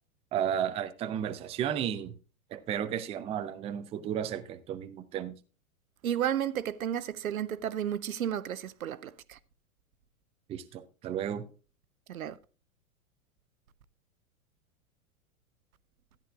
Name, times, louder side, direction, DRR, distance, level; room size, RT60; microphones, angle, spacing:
voice 1, 0.3-2.1 2.5-5.3 10.5-11.5, right 9 dB, 15° right, 0.5 m, -33 dB
voice 2, 6.0-9.4 12.1-12.4, right 10 dB, 75° right, 0.7 m, -32 dB
13.5 x 10.0 x 2.4 m
figure-of-eight pair, 100°, 43 cm